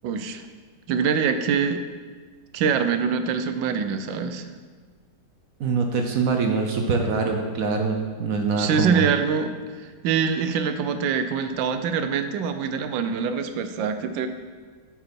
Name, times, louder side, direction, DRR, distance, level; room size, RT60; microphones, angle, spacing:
voice 1, 0.0-0.4 0.9-1.8 2.5-4.5 8.5-9.5 9.8-14.3, right 6 dB, 85° right, 9 dB, 1.4 m, -24 dB
voice 2, 5.6-9.1, right 4 dB, 60° right, 3 dB, 1.0 m, -24 dB
8.7 x 5.9 x 4.4 m, 1.5 s
omnidirectional pair, 2.0 m